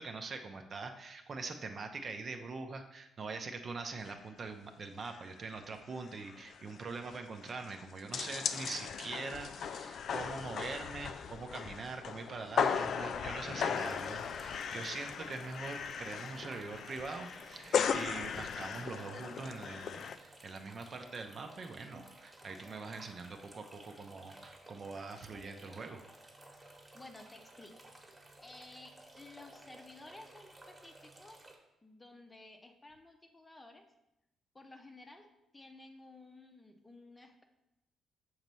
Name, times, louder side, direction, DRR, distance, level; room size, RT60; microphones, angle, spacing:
voice 1, 0.0-26.0, right 4 dB, 45° right, 5 dB, 0.6 m, -43 dB
sound 1, 4.1-4.2 4.5-4.6 5.0-5.3 5.6-5.7 6.0-20.2, left 7 dB, 60° left, 0.3 m, -37 dB
sound 2, 13.7-31.6, right 1 dB, 20° right, 1.2 m, -56 dB
voice 2, 26.9-27.8 28.4-31.5 31.8-33.9 34.5-37.4, left 2 dB, 15° left, 5 dB, 0.7 m, -54 dB
6.4 x 3.1 x 5.3 m, 0.87 s
cardioid pair, 90°, 0 cm